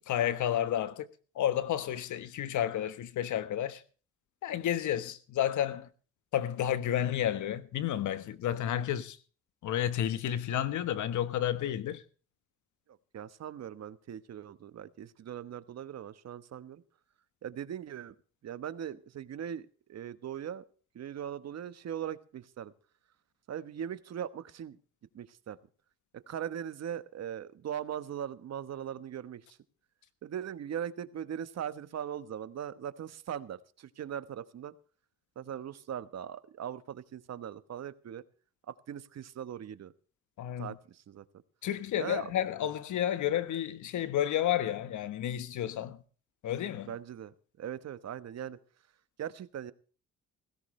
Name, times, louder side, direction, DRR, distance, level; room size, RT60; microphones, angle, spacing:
voice 1, 0.1-1.1 1.3-3.8 4.4-5.9 6.3-9.2 9.6-12.0 40.4-40.7 41.6-46.0 46.4-46.9, left 11 dB, 75° left, 1.4 m, -31 dB
voice 2, 12.9-16.8 17.4-18.1 18.4-20.6 20.9-22.7 23.5-24.8 25.1-25.6 26.3-29.6 30.2-34.7 35.4-38.2 38.7-39.9 40.6-41.2 42.0-42.3 46.9-48.6 49.2-49.7, right 9 dB, 60° right, 1.2 m, -40 dB
17.0 x 16.0 x 3.2 m
cardioid pair, 90°, 30 cm